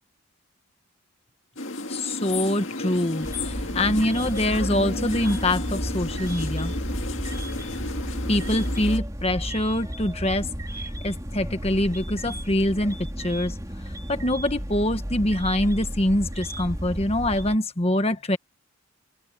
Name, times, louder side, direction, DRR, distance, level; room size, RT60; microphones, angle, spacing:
sound 1, 1.6-9.0, left 2 dB, 60° left, 2.1 m, -33 dB
voice 1, 1.9-6.7 8.3-13.5 14.1-18.4, left 1 dB, 25° left, 1.5 m, -25 dB
sound 2, 3.2-17.6, equal, 15° right, 3.2 m, -32 dB
head